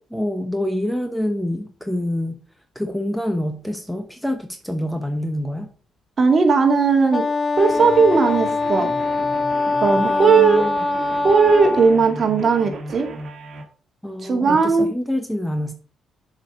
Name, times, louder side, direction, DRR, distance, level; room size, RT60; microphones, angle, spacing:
voice 1, 0.1-2.4 2.7-5.7 10.0-10.8 14.0-15.7, left 1 dB, ahead, 7 dB, 1.1 m, -26 dB
voice 2, 6.2-7.2 7.6-8.9 9.8-10.7 11.2-13.1 14.2-14.9, right 5 dB, 45° right, 4 dB, 2.3 m, -17 dB
Wind instrument woodwind instrument, 7.1-12.0, left 3 dB, 30° left, 1.0 m, -23 dB
sound 1, 7.6-13.6, right 3 dB, 60° right, 1.9 m, -36 dB
7.3 x 5.1 x 6.2 m, 0.41 s
cardioid pair, 90°, 0 cm